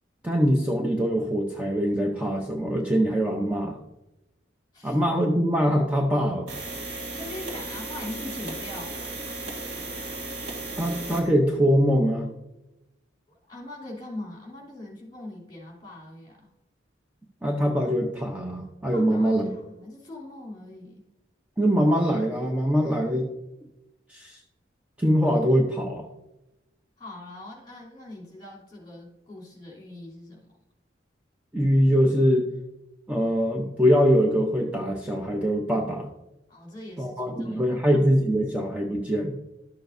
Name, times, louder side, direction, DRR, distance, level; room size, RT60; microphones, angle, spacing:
voice 1, 0.2-3.8 4.8-6.5 10.8-12.3 17.4-19.5 21.6-23.3 24.1-24.4 25.0-26.1 31.5-32.5 33.1-36.1 37.0-39.4, equal, 5° right, 0 dB, 0.6 m, -23 dB
sound 1, 6.5-11.3, right 2 dB, 80° right, 2.8 m, -35 dB
voice 2, 6.7-9.1 13.3-16.5 18.9-21.0 27.0-30.5 36.5-37.8, left 1 dB, 20° left, -3 dB, 3.1 m, -41 dB
12.5 x 6.8 x 2.6 m, 0.95 s
head